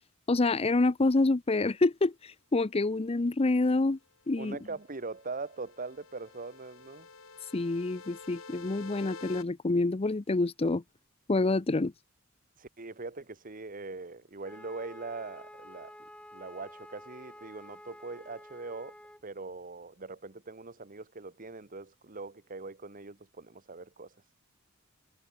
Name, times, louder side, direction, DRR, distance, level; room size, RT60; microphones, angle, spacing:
voice 1, 0.3-4.0 4.3-4.6 7.5-10.8 11.3-11.9, left 2 dB, 30° left, 0.6 m, -27 dB
voice 2, 4.4-7.1 12.6-18.9 19.2-24.1, right 3 dB, 40° right, 1.3 m, -42 dB
sound 1, 4.5-9.4, left 4 dB, 70° left, 3.1 m, -49 dB
Wind instrument woodwind instrument, 14.4-19.2, left 1 dB, 5° left, 6.4 m, -50 dB
head